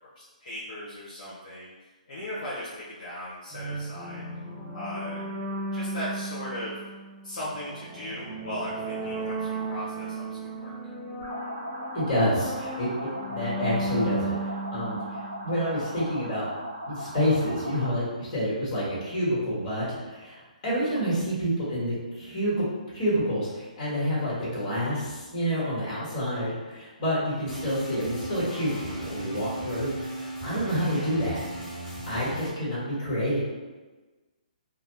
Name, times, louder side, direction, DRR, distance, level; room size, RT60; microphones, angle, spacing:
voice 1, 0.2-1.7 2.1-4.2 4.7-5.2 5.7-6.8 7.2-10.7 30.8-31.1, left 1 dB, 65° left, -8 dB, 0.8 m, -37 dB
sound 1, 3.5-16.0, right 2 dB, 15° right, 0.5 m, -35 dB
sound 2, 11.2-18.0, equal, 65° right, 0.9 m, -38 dB
voice 2, 11.9-16.4 16.9-22.7 22.9-31.4 32.1-33.4, equal, 35° left, -9 dB, 1.4 m, -28 dB
sound 3, 27.5-32.5, right 1 dB, 5° left, 1.4 m, -36 dB
2.5 x 2.1 x 3.2 m, 1.3 s
hypercardioid pair, 140°, 4 cm